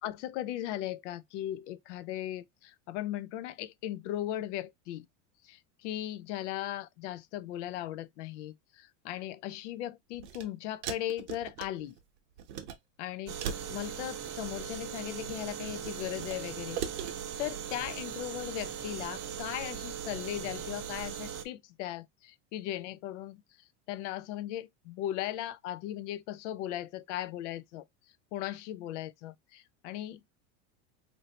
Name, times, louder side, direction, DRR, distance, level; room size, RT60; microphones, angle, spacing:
voice 1, 0.0-5.1 5.4-12.0 13.0-13.4 13.7-17.1 17.4-23.4 23.9-27.8 28.3-30.2, left 13 dB, 65° left, 0.5 m, -38 dB
sound 1, 10.1-10.4 10.8-12.0 12.4-12.8 13.4-14.6 15.1-16.4 16.7-17.1, right 9 dB, 60° right, 0.8 m, -39 dB
sound 2, 13.3-21.4, right 8 dB, 30° right, 0.4 m, -39 dB
3.2 x 2.7 x 2.7 m
supercardioid pair, 155°, 38 cm